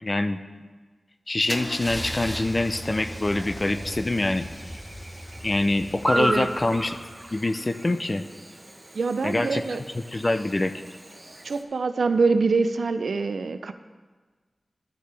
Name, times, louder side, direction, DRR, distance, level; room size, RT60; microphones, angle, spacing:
voice 1, 0.0-0.4 1.3-4.5 5.4-7.0 7.3-8.2 9.2-9.6 10.1-10.7, left 2 dB, 40° left, 10 dB, 0.5 m, -25 dB
Car / Engine starting / Idling, 1.5-7.3, equal, 5° left, 0.7 m, -37 dB
Chirp tweet / Buzz, 1.5-11.6, right 1 dB, 25° right, 0.9 m, -37 dB
voice 2, 6.1-6.5 8.9-9.8 11.4-13.7, right 4 dB, 90° right, 10 dB, 0.4 m, -24 dB
12.0 x 6.7 x 3.3 m, 1.4 s
wide cardioid pair, 55°, 0 cm